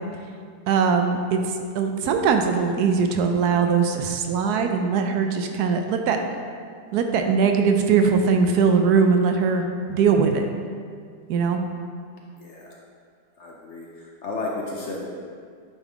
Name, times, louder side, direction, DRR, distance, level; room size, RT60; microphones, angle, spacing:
voice 1, 0.7-1.4 1.7-6.2 6.9-10.5 11.3-11.6, right 5 dB, 80° right, 5 dB, 1.1 m, -21 dB
voice 2, 12.4-12.8 13.4-15.1, left 2 dB, 60° left, -2 dB, 0.8 m, -33 dB
9.0 x 3.6 x 3.5 m, 2.1 s
omnidirectional pair, 1.7 m